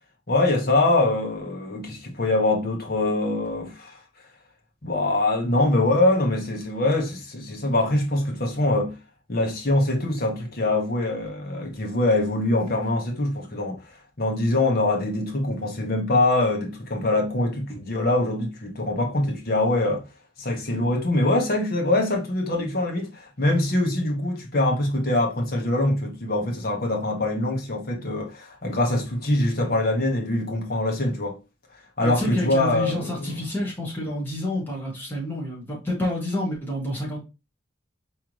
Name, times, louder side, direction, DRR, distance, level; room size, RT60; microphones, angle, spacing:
voice 1, 0.3-4.0 4.8-8.9 9.3-13.8 14.2-20.0 20.4-31.4 32.0-33.3, left 2 dB, 50° left, 1.3 m, -23 dB
voice 2, 32.0-37.2, left 1 dB, 10° left, 1.8 m, -29 dB
4.9 x 3.5 x 3.0 m
head